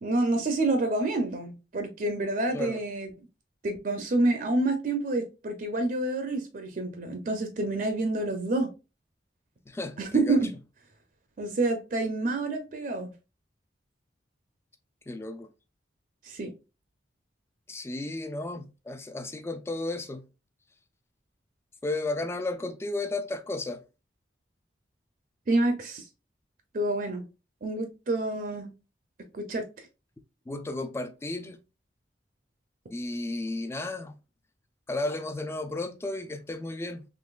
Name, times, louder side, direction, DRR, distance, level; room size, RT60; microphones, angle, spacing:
voice 1, 0.0-3.1 3.6-8.7 10.0-10.5 11.4-13.1 16.2-16.5 25.5-26.0 26.7-27.3 27.6-28.7 29.3-29.7, right 2 dB, 50° right, 0.5 m, -28 dB
voice 2, 9.7-10.4 15.1-15.5 17.7-20.3 21.8-23.8 30.5-31.6 32.9-34.1 34.9-37.1, left 2 dB, 15° left, 0.3 m, -33 dB
3.8 x 3.0 x 2.3 m
head